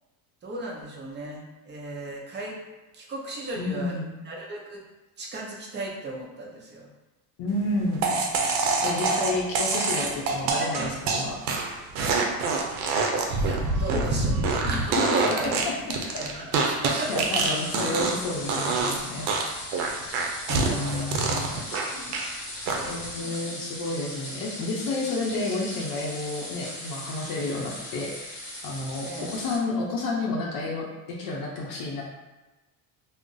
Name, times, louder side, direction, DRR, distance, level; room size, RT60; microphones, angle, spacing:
voice 1, 0.4-2.6 2.9-4.0 4.2-4.8 5.2-6.9 13.3-15.6 16.2-16.5 16.8-17.3 20.6-21.2 21.5-22.2 22.7-23.6 29.0-29.3, right 2 dB, 25° right, -2 dB, 0.6 m, -36 dB
voice 2, 3.6-4.1 7.4-8.1 8.8-11.4 14.6-14.7 15.1-15.4 15.6-16.1 17.1-19.3 20.5-21.6 22.9-28.3 28.6-30.8 31.2-32.0, left 2 dB, 45° left, -2 dB, 0.6 m, -30 dB
sound 1, 8.0-18.2 18.5-19.0 19.3-22.3 22.7-23.1, right 4 dB, 90° right, 0.6 m, -26 dB
sound 2, 16.9-29.6, left 1 dB, 25° left, 1.0 m, -39 dB
2.4 x 2.1 x 3.8 m, 1.1 s
cardioid pair, 120°, 48 cm